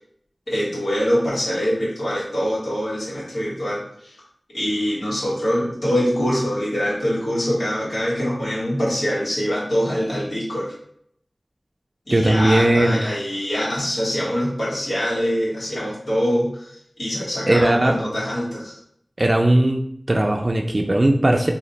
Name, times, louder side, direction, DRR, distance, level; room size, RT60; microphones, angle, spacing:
voice 1, 0.5-4.1 4.5-10.7 12.1-16.7 17.0-18.7, equal, 90° left, -8 dB, 1.3 m, -24 dB
voice 2, 12.1-13.0 17.5-18.0 19.2-21.5, right 1 dB, 40° right, 2 dB, 0.3 m, -18 dB
2.9 x 2.4 x 4.0 m, 0.69 s
wide cardioid pair, 55°, 0 cm